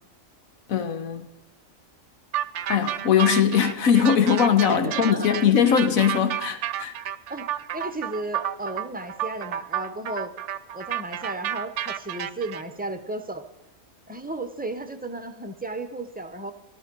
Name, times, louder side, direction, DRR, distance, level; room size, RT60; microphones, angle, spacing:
voice 1, 0.7-1.3 2.7-6.9, left 8 dB, 85° left, 1.5 m, -21 dB
sound 1, 2.3-12.6, right 11 dB, 65° right, 0.9 m, -31 dB
voice 2, 4.7-5.5 7.3-7.5 7.7-10.3 10.7-13.4 14.1-16.5, right 2 dB, 10° right, 0.7 m, -34 dB
13.5 x 13.5 x 5.4 m
omnidirectional pair, 1.4 m